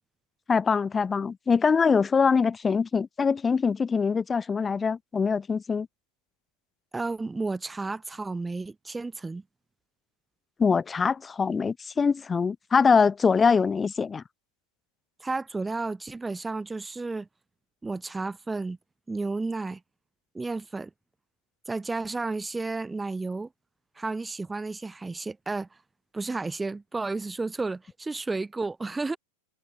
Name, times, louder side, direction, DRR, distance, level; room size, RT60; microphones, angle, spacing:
voice 1, 0.5-5.9 10.6-14.2, left 5 dB, 15° left, 1.1 m, -23 dB
voice 2, 6.9-9.4 15.2-17.3 17.8-18.8 19.1-19.8 20.3-20.9 21.7-23.5 24.0-25.7 26.1-29.2, right 3 dB, 10° right, 1.4 m, -32 dB
figure-of-eight pair, 90°, 0 cm